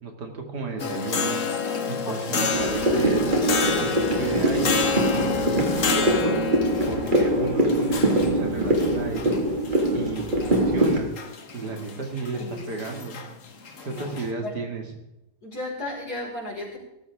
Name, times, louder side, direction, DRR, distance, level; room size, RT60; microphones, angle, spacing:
voice 1, 0.0-1.4 1.9-3.2 3.6-6.4 6.9-9.4 9.9-11.1 11.5-13.2 13.8-14.8, right 3 dB, 75° right, 3 dB, 2.8 m, -33 dB
sound 1, 0.8-14.3, left 4 dB, 50° left, 1.6 m, -29 dB
voice 2, 2.0-2.7 12.4-13.0 13.9-14.1 14.4-14.6 15.4-16.8, left 1 dB, 70° left, -3 dB, 5.5 m, -35 dB
sound 2, 2.5-11.0, right 1 dB, 30° right, 2.1 m, -23 dB
17.5 x 14.0 x 3.6 m, 0.90 s
omnidirectional pair, 1.8 m